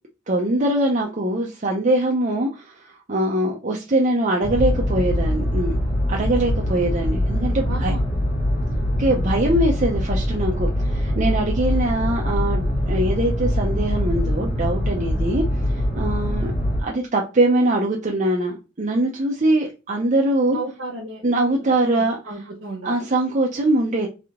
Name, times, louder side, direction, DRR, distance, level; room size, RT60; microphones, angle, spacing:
voice 1, 0.3-5.8 6.1-7.9 9.0-15.4 15.7-16.5 16.8-20.6 21.2-22.2 22.8-24.1, right 1 dB, 40° right, 0.7 m, -22 dB
sound 1, 4.4-16.8, left 1 dB, 45° left, 1.4 m, -23 dB
voice 2, 7.7-8.1 20.5-21.2 21.6-23.1, right 2 dB, 80° right, 1.3 m, -34 dB
3.6 x 3.3 x 3.6 m
head